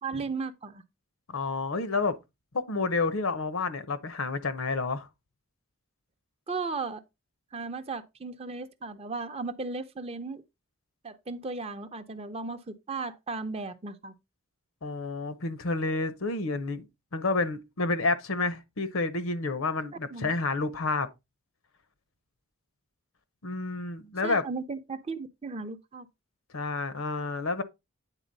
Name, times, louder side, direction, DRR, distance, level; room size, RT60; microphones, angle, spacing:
voice 1, 0.0-0.8 6.5-7.0 7.5-10.4 11.0-14.1 20.1-20.3 24.2-26.1, right 4 dB, 25° right, 0.6 m, -36 dB
voice 2, 1.3-2.2 2.5-5.1 14.8-16.9 17.1-21.1 23.4-24.4 26.5-27.6, left 3 dB, 65° left, 0.8 m, -29 dB
9.0 x 4.0 x 3.9 m
head